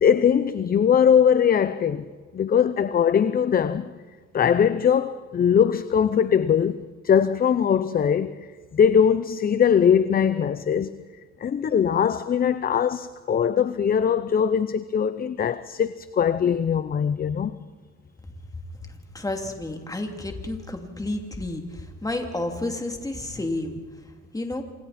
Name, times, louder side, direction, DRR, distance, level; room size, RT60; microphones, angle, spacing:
voice 1, 0.0-2.0 2.3-3.9 4.3-8.4 8.7-11.0 11.4-17.5, left 8 dB, 30° left, 0.6 m, -21 dB
voice 2, 18.9-23.8 24.3-24.6, left 2 dB, 10° left, 2.8 m, -31 dB
27.5 x 27.0 x 4.3 m
cardioid pair, 130°, 30 cm